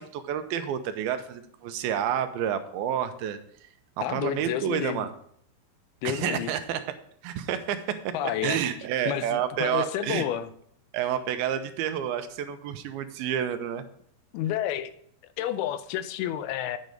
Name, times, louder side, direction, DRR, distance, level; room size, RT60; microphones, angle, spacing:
voice 1, 0.0-3.4 4.1-5.1 6.0-6.8 7.2-10.3 10.9-13.8, right 9 dB, 80° right, 9 dB, 2.5 m, -29 dB
voice 2, 4.0-5.1 6.0-6.5 8.1-8.6 9.1-10.5 14.3-14.9 15.4-16.8, left 11 dB, 85° left, 12 dB, 2.6 m, -30 dB
8.4 x 5.2 x 7.7 m, 0.67 s
omnidirectional pair, 4.4 m